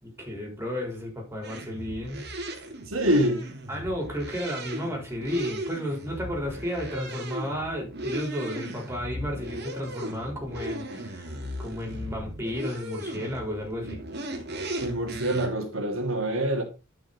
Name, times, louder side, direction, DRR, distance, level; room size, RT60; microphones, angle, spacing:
voice 1, 0.0-2.2 3.7-11.3 11.6-14.0, equal, 15° right, 4.0 m, -33 dB
sound 1, 1.4-15.5, right 1 dB, 55° right, 2.3 m, -37 dB
voice 2, 2.9-3.5 14.8-16.6, right 1 dB, 80° right, 2.5 m, -25 dB
11.5 x 5.9 x 4.1 m
head